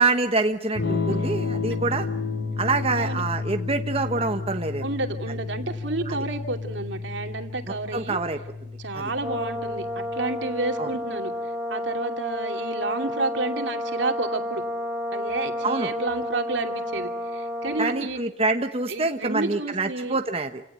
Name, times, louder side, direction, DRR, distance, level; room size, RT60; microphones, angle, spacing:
voice 1, 0.0-2.1 2.6-4.8 6.1-6.2 7.9-8.4 8.9-9.1 10.8-10.9 15.6-15.9 17.8-20.6, right 3 dB, 35° right, 6 dB, 1.1 m, -26 dB
Electric guitar / Strum, 0.7-10.5, left 4 dB, 80° left, 4.2 m, -31 dB
voice 2, 4.8-8.2 8.8-11.3 11.7-14.6 15.1-18.2 18.9-20.2, right 2 dB, 85° right, 5 dB, 2.6 m, -30 dB
Brass instrument, 9.2-18.1, left 1 dB, 15° right, 3.5 m, -31 dB
28.0 x 18.0 x 9.1 m, 0.82 s
head